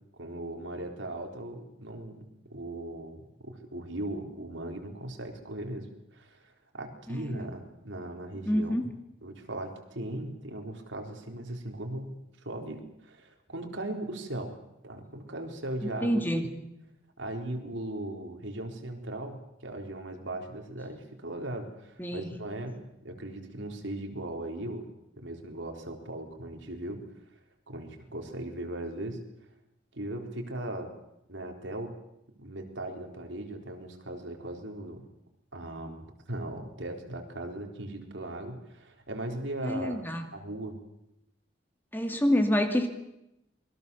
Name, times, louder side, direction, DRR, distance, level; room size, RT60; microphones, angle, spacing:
voice 1, 0.1-5.9 6.1-8.8 9.2-14.6 14.8-16.6 17.2-24.9 25.2-27.0 27.7-29.2 29.9-30.9 31.3-31.9 32.4-35.1 35.5-40.0 40.3-40.8, right 1 dB, 75° right, 3 dB, 4.1 m, -38 dB
voice 2, 7.1-7.5 8.5-8.8 15.8-16.5 22.0-22.3 39.6-40.3 41.9-42.9, equal, 10° left, 5 dB, 2.4 m, -27 dB
28.0 x 22.0 x 7.1 m, 0.87 s
head